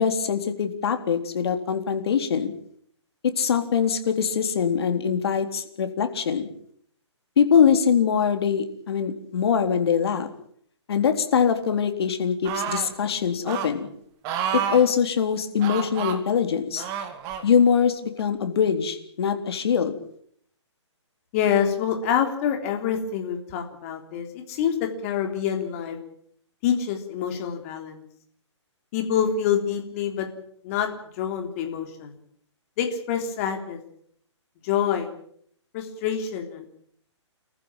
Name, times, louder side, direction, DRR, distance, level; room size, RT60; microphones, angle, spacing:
voice 1, 0.0-2.5 3.2-6.5 7.4-10.3 10.9-13.9 14.5-16.9 17.4-19.9, left 7 dB, 55° left, 7 dB, 3.7 m, -23 dB
sound 1, 12.4-12.9 13.5-13.7 14.2-14.9 15.6-16.2 16.8-17.4 18.2-18.3, right 8 dB, 20° right, 2.3 m, -29 dB
voice 2, 21.3-26.0 26.6-28.0 28.9-30.3 30.6-30.9 31.2-32.2 32.8-33.8 34.6-35.1 35.7-36.7, left 8 dB, 30° left, 4 dB, 3.5 m, -26 dB
28.5 x 14.5 x 9.0 m, 0.65 s
hypercardioid pair, 160°, 16 cm